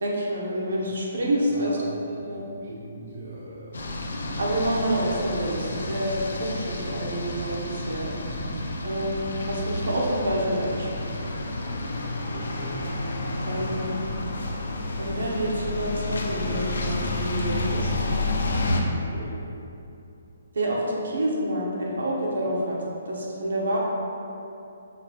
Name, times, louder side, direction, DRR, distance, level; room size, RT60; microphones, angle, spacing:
voice 1, 0.0-1.8 2.1-2.4 4.4-8.1 8.8-11.1 13.4-13.9 15.0-17.9 20.5-22.8 23.0-23.8, right 1 dB, 85° right, -3 dB, 0.8 m, -28 dB
voice 2, 1.5-3.8 12.3-12.8 18.6-19.5, right 1 dB, 50° right, -6 dB, 0.5 m, -40 dB
sound 1, 3.7-18.8, left 2 dB, 85° left, 0.4 m, -30 dB
5.0 x 2.3 x 2.9 m, 2.7 s
hypercardioid pair, 170°, 0 cm